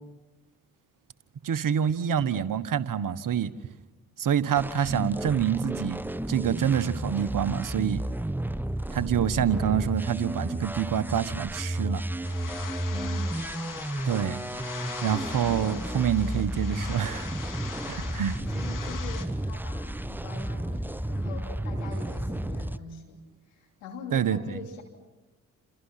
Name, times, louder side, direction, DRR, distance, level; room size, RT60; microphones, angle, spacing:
voice 1, 1.4-3.5 4.2-6.0 6.3-8.0 8.9-12.0 14.1-14.4 15.0-17.3 17.9-18.4 24.1-24.6, right 8 dB, 55° right, 14 dB, 1.4 m, -26 dB
sound 1, 4.5-22.8, right 1 dB, 5° right, 0.8 m, -32 dB
sound 2, 12.2-19.3, left 6 dB, 55° left, 2.9 m, -41 dB
voice 2, 12.9-13.4 18.0-23.2 23.6-24.8, left 4 dB, 90° left, 1 dB, 3.1 m, -43 dB
29.0 x 27.5 x 5.9 m, 1.1 s
hypercardioid pair, 45°, 39 cm